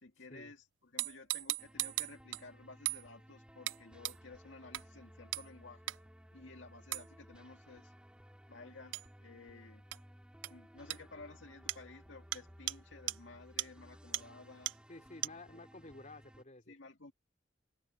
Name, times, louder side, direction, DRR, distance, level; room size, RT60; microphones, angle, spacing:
voice 1, 0.0-5.9 6.3-7.9 8.5-9.8 10.5-14.7 16.7-17.1, left 3 dB, 90° left, 2.0 m, -54 dB
sound 1, 1.0-2.4 2.9-3.0 3.7-3.8 4.0-4.2 4.7-4.8 5.3-5.5 5.9-6.0 6.9-7.1 8.9-9.1 9.9-10.0 10.4-10.5 10.9-11.0 11.7-11.8 12.3-12.4 12.7-12.8 13.1-13.2 13.6-13.7 14.1-14.2 14.7-14.8 15.2-15.3, right 17 dB, 80° right, 0.4 m, -36 dB
sound 2, 1.6-16.4, equal, 5° right, 3.4 m, -58 dB
voice 2, 14.9-16.7, left 2 dB, 40° left, 4.9 m, -52 dB
head